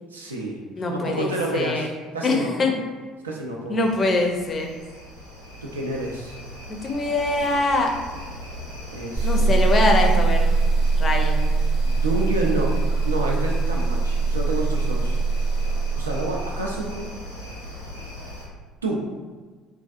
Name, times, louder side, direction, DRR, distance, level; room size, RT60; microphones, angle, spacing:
voice 1, 0.1-0.6 0.9-2.5 3.2-3.8 5.6-6.3 8.9-9.5 11.8-15.2 16.0-17.1 18.8-19.0, right 2 dB, 80° right, -1 dB, 0.3 m, -29 dB
voice 2, 0.8-1.9 2.2-2.7 3.7-4.7 6.8-7.9 9.2-10.4 11.0-11.5, left 2 dB, 35° left, 2 dB, 0.4 m, -23 dB
sound 1, 3.8-18.5, left 1 dB, 90° left, 0.6 m, -39 dB
sound 2, 9.2-17.0, right 3 dB, 25° right, 0.7 m, -22 dB
2.3 x 2.3 x 2.5 m, 1.4 s
figure-of-eight pair, 55°, 0 cm